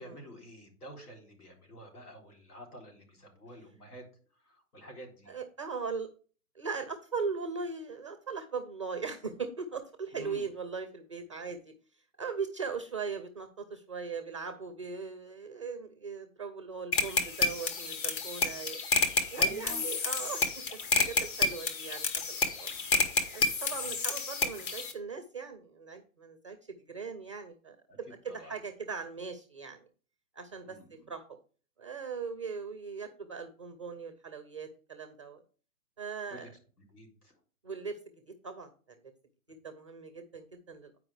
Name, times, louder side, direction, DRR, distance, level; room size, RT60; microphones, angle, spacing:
voice 1, 0.0-4.1 4.4-5.3 10.1-10.4 19.3-19.9 27.9-28.0 28.3-28.5 30.6-31.1 36.3-36.5 36.9-37.3, equal, 80° left, 2 dB, 3.9 m, -48 dB
voice 2, 5.3-6.1 6.6-11.7 12.2-18.8 19.3-20.5 20.7-22.7 23.3-29.9 30.3-30.8 31.1-31.2 31.8-35.4 36.0-36.5 37.6-38.0 38.3-38.7 39.5-40.9, right 5 dB, 20° right, 7 dB, 0.4 m, -39 dB
sound 1, 16.9-24.9, left 4 dB, 35° left, 1.3 m, -30 dB
9.0 x 4.9 x 4.8 m, 0.40 s
hypercardioid pair, 145°, 45 cm